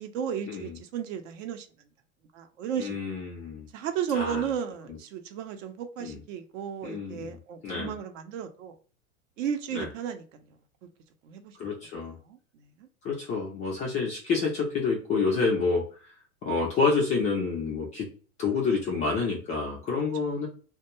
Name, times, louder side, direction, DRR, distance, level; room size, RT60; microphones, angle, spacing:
voice 1, 0.0-1.7 2.3-3.0 3.7-8.7 9.4-10.4 11.2-11.7 12.2-12.4 12.8-12.9 20.2-20.3, right 8 dB, 60° right, 0.7 m, -34 dB
voice 2, 2.8-3.7 4.1-4.4 6.0-6.2 6.8-7.4 7.6-8.0 9.7-9.9 11.6-12.2 13.0-16.1 16.4-18.1 18.4-20.5, left 4 dB, 20° left, 0.3 m, -28 dB
2.2 x 2.2 x 2.9 m
hypercardioid pair, 110°, 43 cm